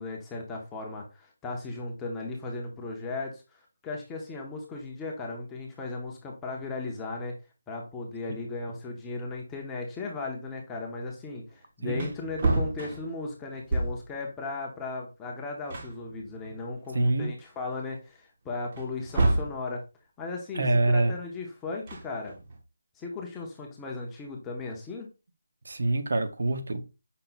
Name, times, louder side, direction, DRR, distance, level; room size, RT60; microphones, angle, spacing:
voice 1, 0.0-7.4 7.7-19.8 20.2-22.4 23.0-25.1, left 3 dB, 10° left, 0.5 m, -36 dB
Wood, 11.5-11.6 11.9-14.2 15.3-15.4 15.7-16.9 17.4-17.5 18.7-19.6 21.7-22.6, right 2 dB, 30° right, 0.7 m, -29 dB
voice 2, 16.9-17.3 20.5-21.1 25.6-26.8, right 2 dB, 60° right, 0.7 m, -25 dB
5.5 x 2.1 x 3.9 m
figure-of-eight pair, 175°, 0 cm